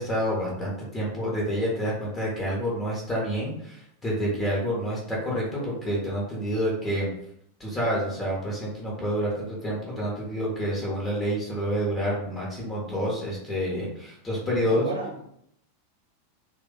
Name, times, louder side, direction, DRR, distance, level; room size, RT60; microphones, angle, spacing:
voice 1, 0.0-7.1 7.6-14.9, equal, 15° left, -4 dB, 1.3 m, -28 dB
voice 2, 14.6-15.2, right 3 dB, 65° right, 1 dB, 0.7 m, -33 dB
3.2 x 2.4 x 3.7 m, 0.72 s
figure-of-eight pair, 90°, 0 cm